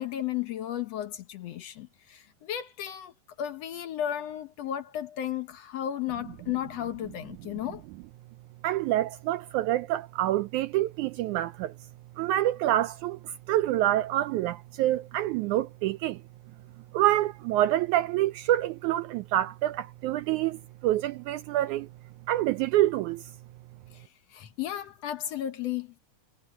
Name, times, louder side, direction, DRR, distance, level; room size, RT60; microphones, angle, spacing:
voice 1, 0.0-3.1 3.4-7.9 23.9-26.0, left 11 dB, 65° left, 1.8 m, -34 dB
voice 2, 8.6-11.7 12.2-13.2 13.5-16.2 16.9-21.9 22.3-23.2, right 14 dB, 80° right, 1.9 m, -26 dB
omnidirectional pair, 3.8 m